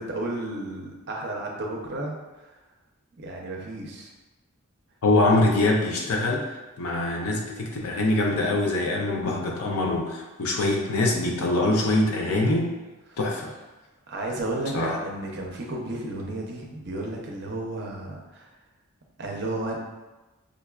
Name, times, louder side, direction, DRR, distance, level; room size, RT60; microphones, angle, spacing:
voice 1, 0.0-2.4 3.2-4.1 13.1-13.2 14.1-18.5 19.2-19.8, right 2 dB, 50° right, 0 dB, 0.6 m, -33 dB
voice 2, 5.0-6.5 6.8-12.7 13.2-13.5 14.7-15.0, left 2 dB, 85° left, 0 dB, 0.5 m, -24 dB
5.1 x 2.3 x 2.3 m, 1.1 s
head